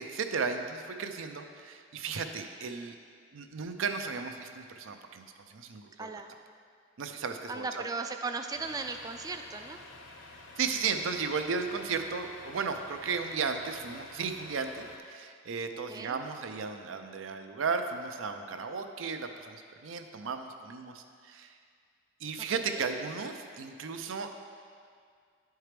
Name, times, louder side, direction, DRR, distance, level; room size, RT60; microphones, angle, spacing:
voice 1, 0.0-2.9 3.3-6.1 7.0-7.8 10.6-21.5 22.2-24.3, right 5 dB, 85° right, 6 dB, 0.5 m, -35 dB
voice 2, 6.0-6.4 7.5-9.8 15.9-16.2 22.6-22.8, right 4 dB, 20° right, 6 dB, 0.3 m, -37 dB
Truck, 8.5-15.0, left 2 dB, 75° left, 0.7 m, -50 dB
11.0 x 4.6 x 3.3 m, 2.2 s
head